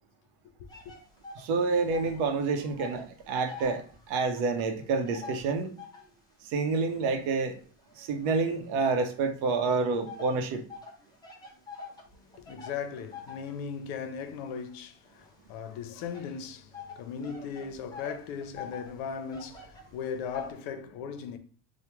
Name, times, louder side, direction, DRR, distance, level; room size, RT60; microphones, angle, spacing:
sound 1, 0.7-2.3 2.5-6.2 6.8-8.8 9.5-20.5, left 4 dB, 10° left, 0.4 m, -46 dB
voice 1, 1.4-3.8 4.1-5.7 6.5-7.6 8.0-10.6, right 4 dB, 70° right, 0.7 m, -28 dB
voice 2, 12.3-21.4, left 6 dB, 80° left, 0.6 m, -38 dB
3.5 x 2.1 x 3.0 m
cardioid pair, 160°, 38 cm